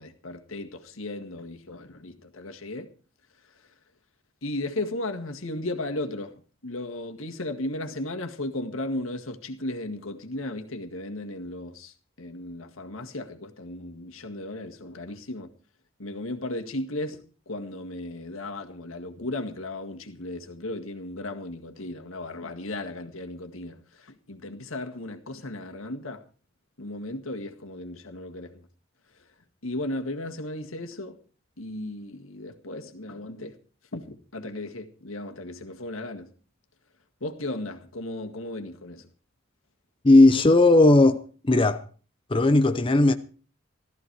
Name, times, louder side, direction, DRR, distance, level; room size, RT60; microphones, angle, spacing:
voice 1, 0.0-2.9 4.4-15.5 16.0-26.2 26.8-28.7 29.6-31.2 31.6-33.6 33.9-36.3 37.2-39.1, left 1 dB, 90° left, 1.9 m, -35 dB
voice 2, 40.0-41.8 42.3-43.1, left 2 dB, 25° left, 0.7 m, -17 dB
15.5 x 13.5 x 4.7 m
head